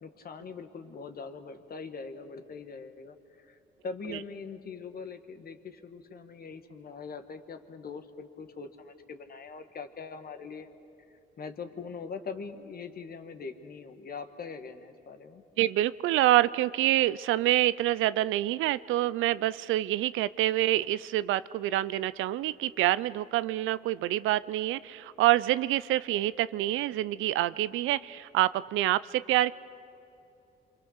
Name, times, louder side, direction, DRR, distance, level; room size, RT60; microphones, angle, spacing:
voice 1, 0.0-3.6 3.8-10.7 11.1-15.4, left 5 dB, 50° left, 8 dB, 1.7 m, -42 dB
voice 2, 15.6-29.5, right 15 dB, 90° right, 17 dB, 0.5 m, -26 dB
27.0 x 24.5 x 6.5 m, 2.8 s
cardioid pair, 90°, 20 cm